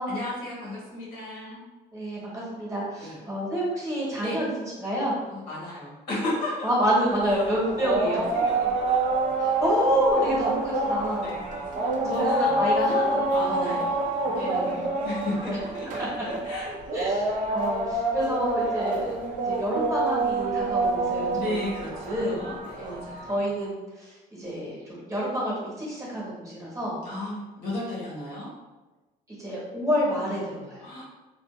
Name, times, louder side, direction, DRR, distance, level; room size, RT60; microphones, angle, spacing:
voice 1, 0.1-1.6 3.0-3.2 4.2-4.4 5.3-6.9 7.3-7.5 8.3-9.1 11.1-12.6 13.3-16.7 21.3-23.3 27.0-28.5 30.8-31.0, left 1 dB, 75° left, -6 dB, 1.2 m, -35 dB
voice 2, 1.9-4.5 4.8-5.1 6.6-8.3 9.4-11.4 12.0-13.8 14.4-14.7 15.5-15.6 16.0-16.1 16.9-19.2 19.4-21.6 22.0-22.4 22.8-27.0 29.3-30.9, equal, 20° right, -6 dB, 1.1 m, -29 dB
sound 1, 7.1-23.4, right 2 dB, 50° right, 0.5 m, -27 dB
2.4 x 2.4 x 2.4 m, 1.1 s
cardioid pair, 110°, 17 cm